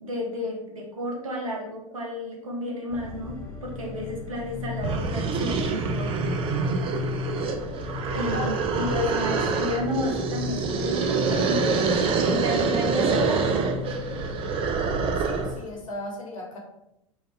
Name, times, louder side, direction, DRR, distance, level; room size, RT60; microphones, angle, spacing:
voice 1, 0.0-6.3 8.1-11.9 12.3-13.5, left 1 dB, 80° right, -1 dB, 0.9 m, -32 dB
sound 1, 2.9-15.6, left 6 dB, 15° left, 0.7 m, -36 dB
sound 2, 4.4-4.5 4.8-15.6, right 5 dB, 30° right, 0.5 m, -26 dB
voice 2, 8.1-8.5 8.9-9.0 9.2-9.6 15.2-16.6, left 1 dB, 75° left, 0 dB, 1.0 m, -37 dB
3.7 x 2.6 x 3.4 m, 0.83 s
figure-of-eight pair, 80°, 17 cm